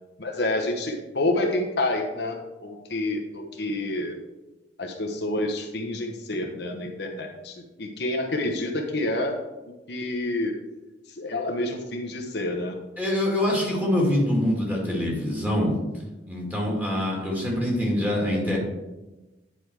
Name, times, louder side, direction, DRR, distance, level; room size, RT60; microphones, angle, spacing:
voice 1, 0.2-4.2 4.8-9.4 9.9-10.5 11.2-12.8, left 2 dB, 65° left, 3 dB, 1.0 m, -28 dB
voice 2, 13.0-15.7 16.3-18.6, left 1 dB, 10° right, -3 dB, 2.4 m, -24 dB
10.0 x 5.2 x 4.8 m, 1.1 s
head